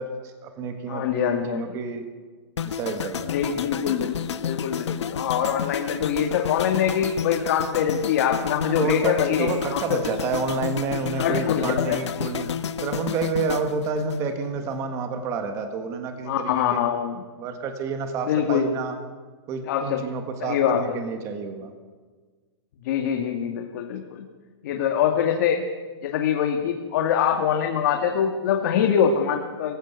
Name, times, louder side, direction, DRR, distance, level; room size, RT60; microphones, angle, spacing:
voice 1, 0.0-2.0 2.6-3.4 8.6-12.5 12.8-16.8 17.4-19.0 19.5-21.7, right 4 dB, 20° right, 7 dB, 1.7 m, -29 dB
voice 2, 0.9-1.6 3.3-10.0 11.2-12.5 16.3-17.2 18.3-18.8 19.7-20.0 20.4-20.8 22.8-24.3 24.6-25.6 26.0-29.8, left 8 dB, 40° left, 3 dB, 1.9 m, -24 dB
sound 1, 2.6-14.8 15.0-15.3, left 8 dB, 90° left, 1.3 m, -31 dB
24.0 x 15.0 x 8.2 m, 1.4 s
hypercardioid pair, 170°, 14 cm